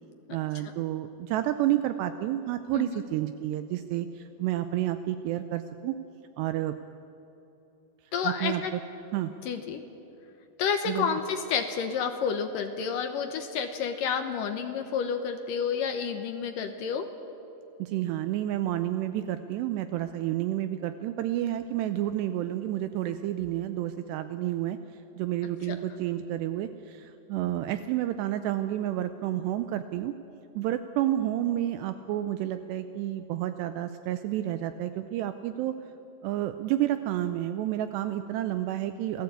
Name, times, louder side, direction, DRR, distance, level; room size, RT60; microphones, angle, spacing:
voice 1, 0.3-6.0 6.4-6.7 8.2-8.6 9.1-9.3 10.9-11.2 17.8-24.8 25.2-30.1 30.6-35.8 36.2-39.2, right 13 dB, 80° right, 10 dB, 2.7 m, -30 dB
voice 2, 2.7-3.1 8.1-8.7 9.4-9.8 10.6-17.1 25.6-25.8, left 6 dB, 70° left, 6 dB, 2.2 m, -30 dB
27.5 x 18.5 x 8.3 m, 3.0 s
omnidirectional pair, 5.2 m